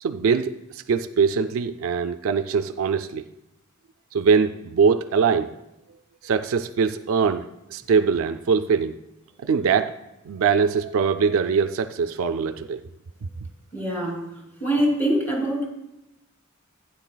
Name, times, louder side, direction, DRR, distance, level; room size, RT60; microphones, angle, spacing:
voice 1, 0.0-3.2 4.1-5.5 6.2-8.9 9.4-9.9 10.3-12.8, right 5 dB, 65° right, 9 dB, 0.4 m, -22 dB
voice 2, 13.7-14.2 14.6-15.6, right 1 dB, 10° left, -3 dB, 3.0 m, -23 dB
16.0 x 9.6 x 2.3 m, 0.91 s
head